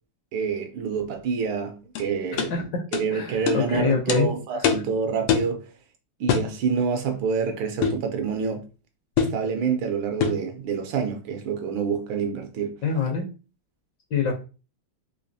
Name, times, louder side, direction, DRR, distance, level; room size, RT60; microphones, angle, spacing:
voice 1, 0.3-2.5 2.9-5.7 6.2-8.7 9.2-12.8, right 6 dB, 75° right, 1.3 m, -27 dB
sound 1, 2.0-2.1 2.4-2.5 2.9-3.1 3.5-3.6 4.1-4.2 4.6-4.9 5.3-5.5 6.3-6.5 7.8-8.1 9.2-9.4 10.2-10.5, left 7 dB, 90° left, 1.5 m, -23 dB
voice 2, 2.3-2.8 3.1-4.3 12.8-13.3 14.1-14.3, left 6 dB, 65° left, 1.2 m, -25 dB
3.9 x 2.8 x 2.6 m
omnidirectional pair, 2.4 m